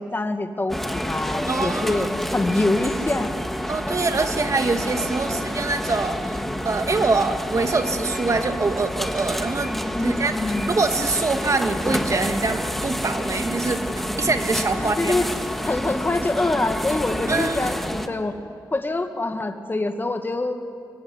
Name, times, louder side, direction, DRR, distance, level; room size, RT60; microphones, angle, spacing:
voice 1, 0.0-3.3 9.9-10.7 14.8-15.3 15.6-18.4 18.7-20.6, left 2 dB, 25° left, 6 dB, 2.1 m, -25 dB
sound 1, 0.7-18.1, equal, 5° left, 1.9 m, -28 dB
voice 2, 1.5-2.1 3.7-6.4 6.6-9.7 10.0-10.4 10.6-15.1 17.3-17.6, right 3 dB, 45° right, 6 dB, 2.3 m, -24 dB
24.5 x 23.0 x 9.9 m, 2.3 s
cardioid pair, 70°, 8 cm